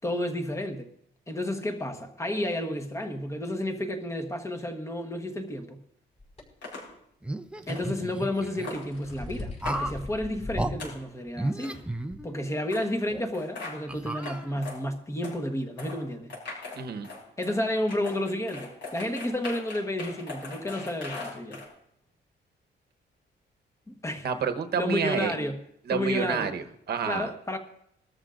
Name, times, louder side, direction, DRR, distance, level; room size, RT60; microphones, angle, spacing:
voice 1, 0.0-0.9 1.3-5.8 7.7-11.8 12.2-16.3 17.4-21.6 23.9-24.3 24.8-25.6 25.9-26.5 27.0-27.6, left 1 dB, 15° left, 1.2 m, -31 dB
sound 1, 6.2-6.4 8.4-10.8 11.2-11.3 12.1-12.2, left 2 dB, 30° left, 5.0 m, -39 dB
sound 2, 6.6-6.8 7.7-7.8 8.6-8.8 9.7-9.8 10.8-10.9 11.6-11.8 12.7-12.8 13.3-13.8 14.2-14.4 14.6-14.8 15.2-15.4 15.8-16.0 16.3-17.6 17.9-21.7, left 3 dB, 70° left, 6.3 m, -39 dB
sound 3, 7.2-8.7 9.6-10.0 10.5-10.7 11.3-12.6 13.1-13.2 13.9-14.8, right 1 dB, 5° right, 0.6 m, -33 dB
voice 2, 16.7-17.1 24.2-25.3 25.9-27.3, right 7 dB, 55° right, 1.1 m, -29 dB
21.5 x 13.5 x 2.6 m
cardioid pair, 150°, 19 cm